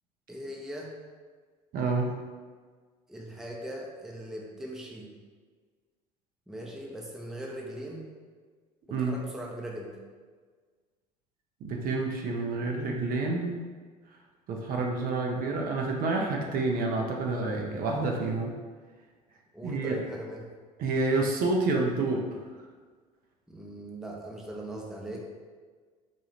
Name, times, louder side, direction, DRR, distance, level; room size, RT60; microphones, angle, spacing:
voice 1, 0.3-0.9 3.1-5.1 6.5-8.1 8.9-10.0 19.5-20.5 23.5-25.3, right 1 dB, ahead, -1 dB, 0.5 m, -40 dB
voice 2, 1.7-2.1 8.9-9.2 11.6-13.7 14.5-18.6 19.6-20.0 20.8-22.4, right 3 dB, 45° right, 1 dB, 0.6 m, -28 dB
4.2 x 2.3 x 3.0 m, 1.5 s
figure-of-eight pair, 60°, 20 cm